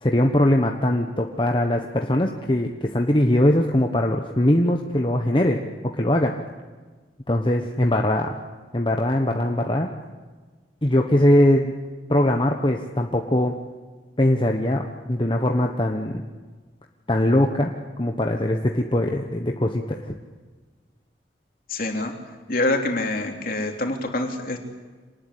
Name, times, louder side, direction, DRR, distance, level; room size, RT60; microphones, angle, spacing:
voice 1, 0.0-5.6 5.9-6.3 7.3-8.3 8.7-9.9 10.8-11.7 12.1-13.6 14.2-16.2 17.1-17.7 18.0-20.2, left 1 dB, 25° left, 3 dB, 1.2 m, -21 dB
voice 2, 21.7-22.1 22.5-24.6, left 2 dB, 50° left, 2 dB, 3.4 m, -25 dB
26.0 x 19.5 x 8.3 m, 1.4 s
head